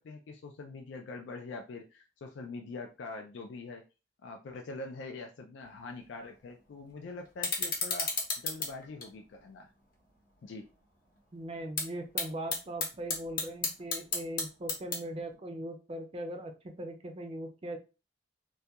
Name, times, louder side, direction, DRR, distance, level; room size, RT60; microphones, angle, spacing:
voice 1, 0.0-3.8 4.2-9.7 10.4-10.6, left 3 dB, 70° left, 3 dB, 0.3 m, -44 dB
sound 1, 5.6-15.3, left 4 dB, 50° left, 0.8 m, -38 dB
voice 2, 11.3-17.8, right 1 dB, 30° right, 5 dB, 0.4 m, -40 dB
2.2 x 2.2 x 2.7 m, 0.30 s
head